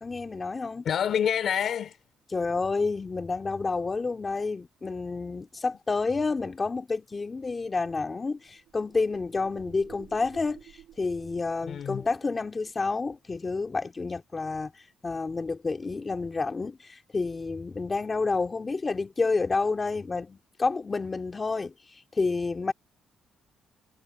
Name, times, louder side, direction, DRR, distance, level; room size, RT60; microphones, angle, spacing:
voice 1, 0.0-0.8 2.3-10.6 11.0-14.7 15.0-21.7 22.2-22.7, left 4 dB, 30° left, 2.5 m, -29 dB
voice 2, 0.8-2.0 11.7-12.0, left 8 dB, 60° left, 2.8 m, -27 dB
sound 1, 8.3-12.8, right 11 dB, 75° right, 6.2 m, -53 dB
cardioid pair, 90°, 0 cm